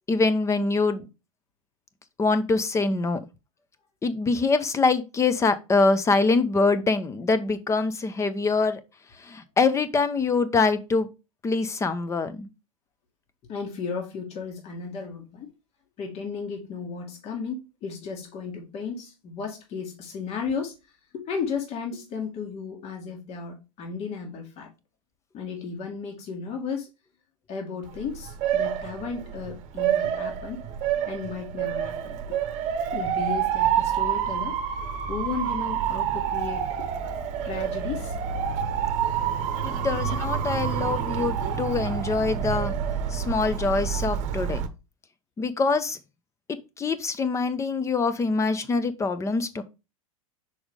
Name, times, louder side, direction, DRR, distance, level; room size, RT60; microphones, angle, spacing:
voice 1, 0.1-1.1 2.2-3.2 4.0-8.8 9.2-11.1 11.4-12.5 39.6-42.7 43.1-44.6 45.4-46.0 46.5-49.6, left 3 dB, 15° left, 0.8 m, -24 dB
voice 2, 13.5-15.5 16.0-24.7 25.3-26.9 27.5-30.6 31.0-32.4 32.9-34.6 35.1-36.9 37.4-38.2 39.9-40.0, left 5 dB, 35° left, 1.9 m, -34 dB
Motor vehicle (road) / Siren, 27.9-44.7, right 8 dB, 40° right, 1.0 m, -28 dB
6.3 x 4.9 x 3.6 m
figure-of-eight pair, 90°, 18 cm